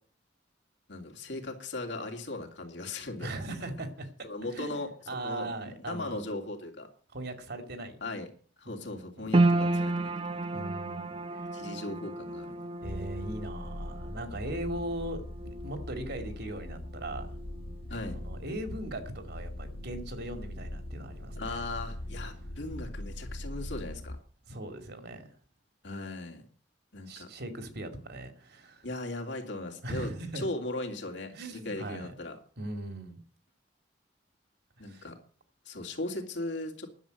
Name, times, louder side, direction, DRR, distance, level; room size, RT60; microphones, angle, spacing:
voice 1, 0.9-3.3 4.2-6.9 8.0-8.3 8.6-10.4 11.5-12.7 17.9-18.2 21.4-24.2 25.8-26.5 26.9-27.3 28.8-32.4 34.8-35.2 35.7-36.9, left 2 dB, 70° left, 3 dB, 2.8 m, -38 dB
voice 2, 3.2-6.2 7.1-8.0 8.7-9.3 10.5-11.5 12.8-17.4 18.1-21.5 24.5-25.4 27.1-28.9 29.8-30.4 31.3-32.1 32.6-33.2 34.8-35.1, right 1 dB, 60° right, 7 dB, 2.4 m, -39 dB
sound 1, 9.3-21.7 22.0-23.0 23.4-23.5, right 2 dB, 30° right, 0.6 m, -34 dB
sound 2, 12.8-24.2, left 1 dB, 90° left, 1.3 m, -41 dB
11.0 x 7.5 x 9.1 m, 0.43 s
head